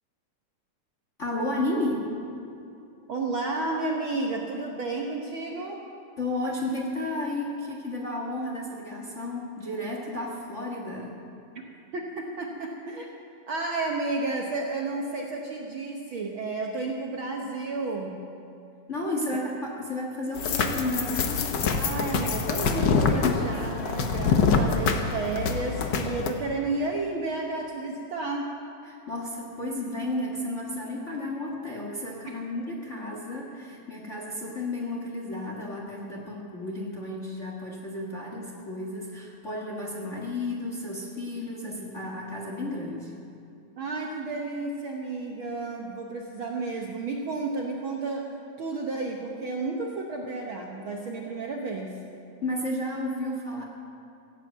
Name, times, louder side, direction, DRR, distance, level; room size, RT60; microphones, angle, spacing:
voice 1, 1.2-2.1 6.2-11.2 18.9-21.5 28.8-43.1 52.4-53.6, left 1 dB, 35° left, -2 dB, 1.4 m, -32 dB
voice 2, 3.1-5.8 11.9-13.1 13.5-18.2 21.7-28.5 32.3-32.4 43.8-48.3 48.6-52.0, right 3 dB, 60° right, 0 dB, 1.4 m, -32 dB
sound 1, 20.3-26.3, left 5 dB, 85° left, 0.9 m, -25 dB
16.5 x 8.9 x 8.2 m, 2.7 s
omnidirectional pair, 3.3 m